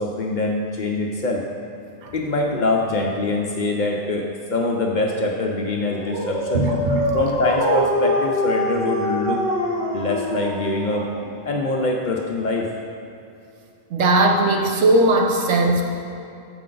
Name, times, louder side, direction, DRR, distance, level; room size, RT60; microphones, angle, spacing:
voice 1, 0.0-1.4 2.1-6.7 7.1-9.4 9.9-11.1 11.5-12.7, left 2 dB, 55° left, 0 dB, 0.5 m, -24 dB
Dog, 5.8-11.5, equal, 55° right, 1.3 m, -24 dB
voice 2, 6.5-7.1 13.9-15.8, right 2 dB, 85° right, 2 dB, 1.0 m, -18 dB
6.5 x 5.0 x 3.8 m, 2.6 s
omnidirectional pair, 1.1 m